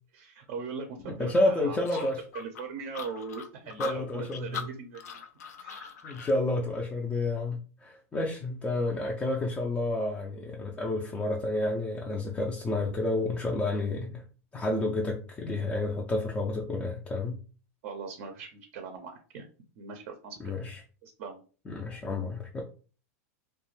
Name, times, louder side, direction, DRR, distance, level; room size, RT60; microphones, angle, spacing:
voice 1, 0.1-2.1 2.3-5.2 5.6-5.9 17.8-19.4 19.8-20.5 21.0-21.4, right 5 dB, 55° right, 4 dB, 0.5 m, -40 dB
voice 2, 1.2-2.2 3.8-4.8 6.0-14.2 14.5-17.4 20.4-20.8 21.7-22.6, left 2 dB, 15° left, -1 dB, 0.3 m, -30 dB
sound 1, 1.8-6.4, left 7 dB, 90° left, 0.4 m, -40 dB
2.3 x 2.1 x 3.0 m, 0.38 s
supercardioid pair, 130°, 8 cm